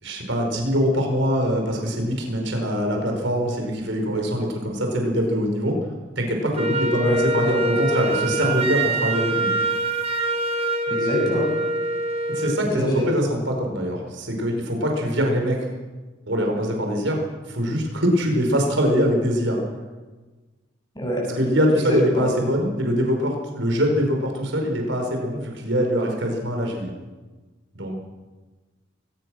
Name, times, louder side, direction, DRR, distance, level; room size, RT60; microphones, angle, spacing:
voice 1, 0.0-5.8 6.2-9.5 12.3-15.7 16.3-17.2 17.4-19.6 21.3-26.9 27.7-27.9, equal, 70° right, 2 dB, 4.9 m, -23 dB
Wind instrument woodwind instrument, 6.5-12.6, right 2 dB, 30° right, 1.8 m, -24 dB
voice 2, 10.9-11.5 12.7-13.0 21.0-21.2 21.9-22.3, equal, 20° left, -3 dB, 7.1 m, -24 dB
22.5 x 19.0 x 6.3 m, 1.3 s
head